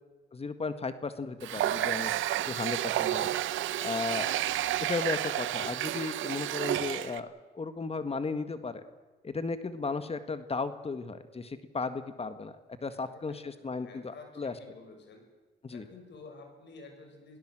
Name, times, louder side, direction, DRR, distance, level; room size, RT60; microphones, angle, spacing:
voice 1, 0.3-2.1 2.5-3.3 3.8-4.3 4.9-8.8 9.2-12.5 12.8-14.5 15.6-15.9, left 4 dB, 30° left, 11 dB, 1.7 m, -35 dB
Water tap faucet, 1.4-7.2, right 13 dB, 80° right, 0.9 m, -31 dB
voice 2, 3.8-4.7 12.9-15.2 15.7-17.4, left 4 dB, 60° left, 4 dB, 6.8 m, -52 dB
27.5 x 17.5 x 7.7 m, 1.2 s
cardioid pair, 90°, 20 cm